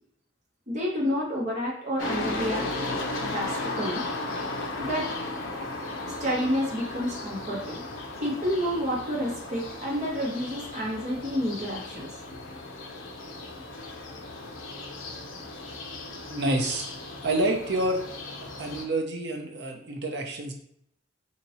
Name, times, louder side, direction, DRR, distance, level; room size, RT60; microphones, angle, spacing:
voice 1, 0.7-2.7 3.2-4.0 4.8-5.1 6.2-7.8 8.2-12.1, equal, 35° right, -5 dB, 1.3 m, -29 dB
sound 1, 2.0-18.8, left 2 dB, 75° left, 0.6 m, -35 dB
voice 2, 16.3-16.9 17.2-18.0 18.6-20.5, right 1 dB, 55° right, 2 dB, 0.7 m, -28 dB
2.9 x 2.8 x 4.3 m, 0.71 s
head